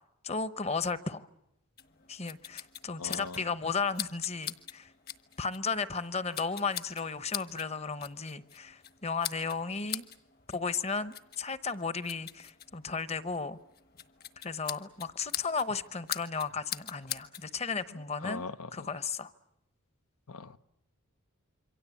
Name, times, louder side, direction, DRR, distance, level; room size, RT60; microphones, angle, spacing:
voice 1, 0.2-1.3 2.1-4.9 5.4-10.0 10.5-13.6 14.4-19.3, left 4 dB, 30° left, 0.9 m, -34 dB
sound 1, 1.8-17.5, left 10 dB, 45° left, 1.4 m, -43 dB
voice 2, 3.0-3.4 18.2-18.7 20.3-20.6, left 4 dB, 90° left, 1.0 m, -40 dB
27.5 x 24.0 x 8.4 m
head